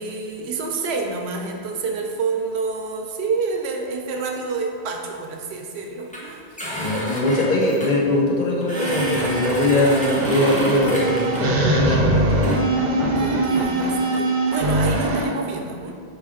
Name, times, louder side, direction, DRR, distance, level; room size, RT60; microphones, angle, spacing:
voice 1, 0.0-6.6 13.2-15.9, right 4 dB, 80° right, 2 dB, 0.8 m, -28 dB
sound 1, 6.1-6.2 6.6-7.9 8.6-11.4 12.3-12.6, equal, 10° left, 0.7 m, -31 dB
voice 2, 6.8-12.6, left 1 dB, 55° left, -2 dB, 0.7 m, -21 dB
sound 2, 8.7-15.2, right 2 dB, 50° right, 0.6 m, -22 dB
4.8 x 3.1 x 3.5 m, 2.2 s
omnidirectional pair, 1.1 m